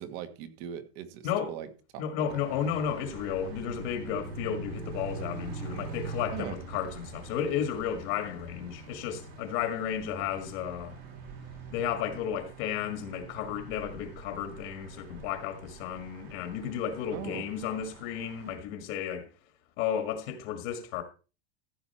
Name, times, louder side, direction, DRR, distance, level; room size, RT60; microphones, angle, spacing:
voice 1, 0.0-1.7 1.9-2.0 2.3-2.4 6.3-6.5 17.1-17.5, right 9 dB, 45° right, 1.7 m, -40 dB
voice 2, 2.0-11.0 11.7-19.3 19.8-21.0, left 8 dB, 50° left, 1.9 m, -33 dB
sound 1, 2.3-18.5, right 3 dB, 75° right, 6.6 m, -44 dB
15.0 x 7.9 x 4.3 m
supercardioid pair, 165°, 31 cm